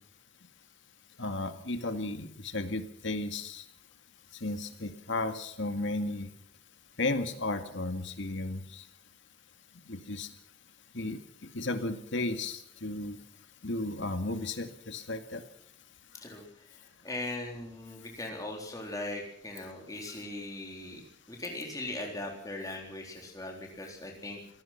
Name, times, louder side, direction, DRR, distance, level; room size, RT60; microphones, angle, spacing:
voice 1, 1.2-3.6 4.3-6.3 7.0-8.9 9.9-10.3 10.9-13.2 13.6-15.4, left 2 dB, 70° left, 8 dB, 2.2 m, -34 dB
voice 2, 17.0-21.0 21.3-24.4, left 2 dB, 20° left, 0 dB, 3.8 m, -39 dB
25.5 x 18.0 x 5.9 m, 0.68 s
head